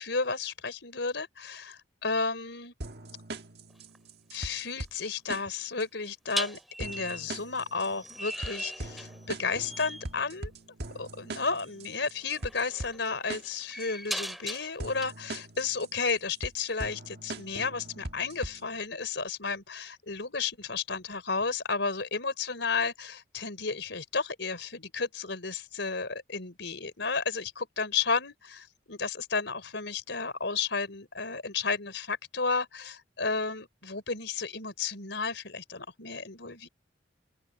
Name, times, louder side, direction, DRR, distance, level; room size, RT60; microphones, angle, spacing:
voice 1, 0.0-2.7 4.3-10.5 10.9-36.7, left 4 dB, 75° left, 4.1 m, -33 dB
sound 1, 2.8-18.8, right 2 dB, 60° right, 1.7 m, -42 dB
sound 2, 3.7-4.0 6.3-9.4 9.6-10.1 11.6-11.7 12.2-15.1, equal, ahead, 2.9 m, -39 dB
open air
head